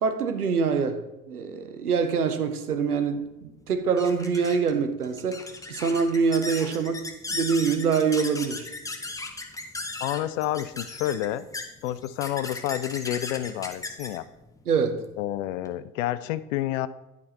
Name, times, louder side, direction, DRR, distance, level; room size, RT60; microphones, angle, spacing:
voice 1, 0.0-5.4 5.7-7.0 7.3-8.7 14.7-15.0, right 5 dB, 85° right, 0.8 m, -25 dB
sound 1, 2.8-15.7, left 2 dB, 10° left, 0.8 m, -38 dB
voice 2, 10.0-11.5 11.8-14.2 15.2-16.9, left 13 dB, 60° left, 0.5 m, -29 dB
10.5 x 4.7 x 4.1 m
figure-of-eight pair, 60°, 44 cm